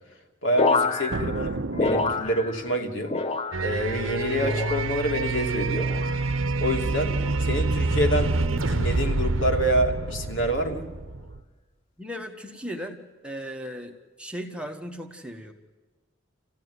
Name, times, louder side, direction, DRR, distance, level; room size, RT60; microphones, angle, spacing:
voice 1, 0.4-3.1 3.6-5.9 6.6-7.1 7.4-10.9, equal, 70° left, 2 dB, 2.7 m, -27 dB
sound 1, 0.6-2.8 3.1-3.9 4.4-5.1 5.7-6.2 7.1-7.5 8.4-8.7, left 3 dB, 30° left, 0.7 m, -28 dB
sound 2, 1.1-2.8, right 3 dB, 65° right, 0.7 m, -32 dB
sound 3, 3.5-11.4, right 3 dB, 80° right, 1.0 m, -27 dB
voice 2, 12.0-15.5, equal, 5° right, 3 dB, 1.3 m, -37 dB
28.5 x 15.5 x 9.6 m, 1.3 s
head